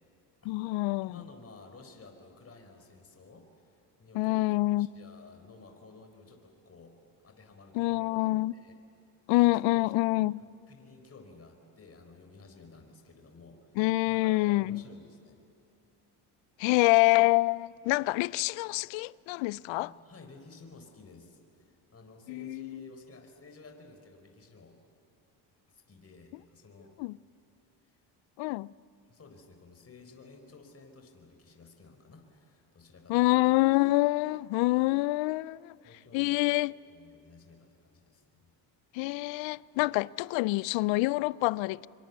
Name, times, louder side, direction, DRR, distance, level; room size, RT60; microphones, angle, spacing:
voice 1, 0.5-1.2 4.1-4.9 7.7-8.5 9.3-10.4 13.8-14.8 16.6-19.9 22.3-22.9 27.0-27.2 28.4-28.7 33.1-35.7 36.1-36.7 38.9-41.9, left 21 dB, 80° left, 0.6 m, -26 dB
voice 2, 1.0-8.8 9.5-9.9 10.7-13.8 14.1-15.4 19.8-24.7 25.7-27.1 27.8-28.0 29.1-33.3 35.8-38.5, left 3 dB, 30° left, 4.2 m, -54 dB
25.0 x 25.0 x 8.2 m
supercardioid pair, 75°, 45 cm